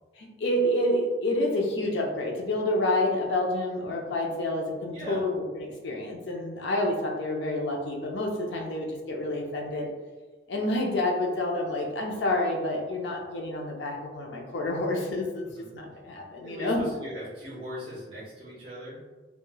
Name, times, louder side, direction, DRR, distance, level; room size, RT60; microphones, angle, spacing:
voice 1, 0.2-9.9 10.5-15.5 15.7-16.8, left 1 dB, 85° left, 0 dB, 0.5 m, -28 dB
voice 2, 4.9-5.3 15.4-15.7 16.4-19.0, equal, 30° right, -8 dB, 0.8 m, -39 dB
3.1 x 2.3 x 2.2 m, 1.3 s
head